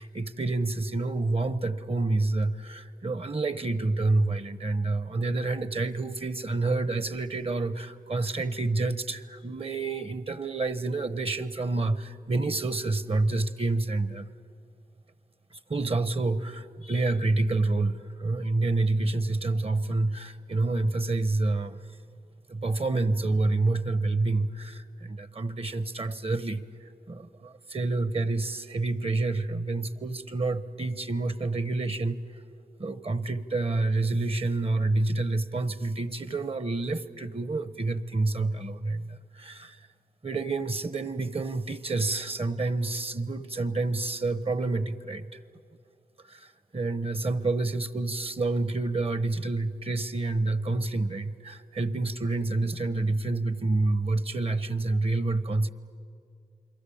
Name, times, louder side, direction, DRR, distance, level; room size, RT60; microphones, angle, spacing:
voice 1, 0.0-14.3 15.5-21.8 22.5-32.4 32.8-39.9 40.2-45.4 46.2-55.7, right 2 dB, 40° right, 15 dB, 1.1 m, -28 dB
28.5 x 22.5 x 8.6 m, 2.3 s
cardioid pair, 50°, 15 cm